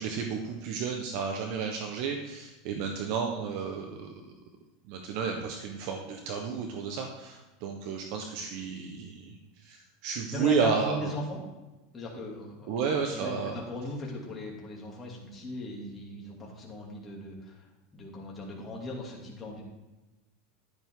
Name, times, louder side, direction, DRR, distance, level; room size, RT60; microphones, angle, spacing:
voice 1, 0.0-4.1 4.9-11.1 12.7-13.6, right 6 dB, 55° right, 3 dB, 1.1 m, -32 dB
voice 2, 10.3-11.4 11.9-12.7 13.0-17.7 17.9-19.6, left 1 dB, 15° left, -3 dB, 2.7 m, -38 dB
11.5 x 9.4 x 3.8 m, 1.1 s
supercardioid pair, 150°, 0 cm